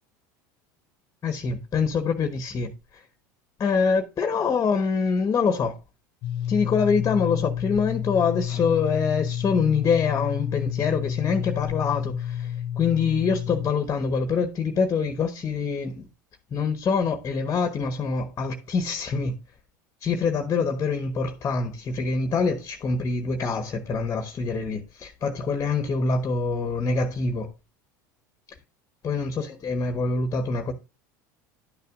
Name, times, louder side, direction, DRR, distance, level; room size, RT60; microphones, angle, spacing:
voice 1, 1.2-3.0 3.6-5.8 6.5-16.1 16.5-19.4 20.0-27.5 29.0-30.7, left 5 dB, 30° left, 1.1 m, -25 dB
sound 1, 6.2-13.7, left 10 dB, 55° left, 0.6 m, -30 dB
11.5 x 6.7 x 2.4 m
hypercardioid pair, 80°, 10 cm